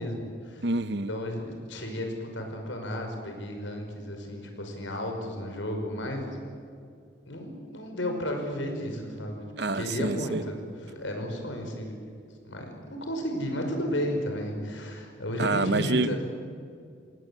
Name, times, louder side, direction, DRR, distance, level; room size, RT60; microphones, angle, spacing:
voice 1, 0.0-0.7 1.1-6.4 7.3-12.0 12.5-16.2, left 1 dB, 80° left, 3 dB, 5.7 m, -33 dB
voice 2, 0.6-1.1 9.6-10.4 15.4-16.1, right 2 dB, 60° right, 13 dB, 0.9 m, -27 dB
28.0 x 19.0 x 8.5 m, 2.3 s
head